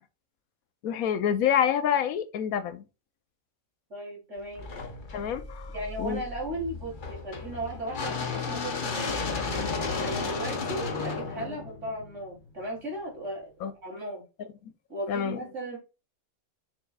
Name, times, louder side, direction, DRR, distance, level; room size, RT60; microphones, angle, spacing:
voice 1, 0.8-2.9 5.1-6.2 13.6-13.7 14.4-14.5 15.1-15.4, left 9 dB, 85° left, 1.1 m, -27 dB
voice 2, 3.9-4.7 5.7-9.2 10.0-13.5 13.8-14.3 14.9-15.8, right 1 dB, 55° right, 3.6 m, -36 dB
sound 1, 4.5-12.6, left 4 dB, 40° left, 1.0 m, -33 dB
7.2 x 6.3 x 2.3 m
omnidirectional pair, 1.5 m